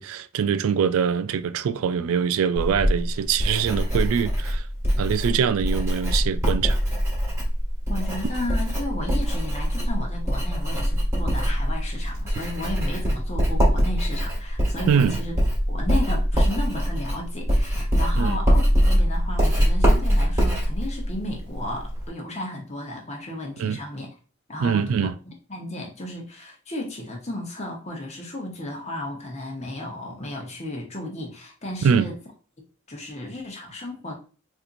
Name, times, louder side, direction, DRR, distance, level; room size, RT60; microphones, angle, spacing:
voice 1, 0.0-4.7 5.0-6.8 14.9-15.2 18.2-18.4 23.6-23.8 24.6-25.1 31.8-32.1, right 7 dB, 70° right, 0.3 m, -23 dB
Writing, 2.6-22.1, equal, 15° right, 1.4 m, -23 dB
voice 2, 7.9-15.3 15.7-24.1 24.5-25.1 25.5-32.2 32.9-34.2, left 1 dB, 30° left, 0.9 m, -34 dB
4.3 x 2.7 x 2.5 m
head